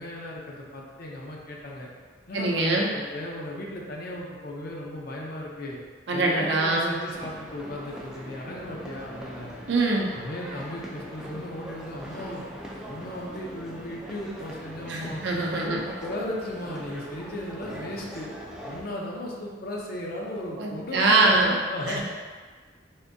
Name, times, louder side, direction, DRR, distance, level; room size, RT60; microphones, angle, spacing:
voice 1, 0.0-1.9 2.3-5.8 6.1-9.6 10.1-12.4 12.9-15.2 15.6-18.3 18.6-22.0, left 1 dB, 50° left, -2 dB, 0.5 m, -36 dB
voice 2, 2.3-2.9 6.1-6.9 9.7-10.1 14.9-15.8 20.6-21.5 21.9-22.0, right 2 dB, 60° right, -2 dB, 0.5 m, -23 dB
sound 1, 7.1-18.8, equal, 5° right, 0.3 m, -41 dB
3.5 x 2.6 x 2.6 m, 1.5 s
head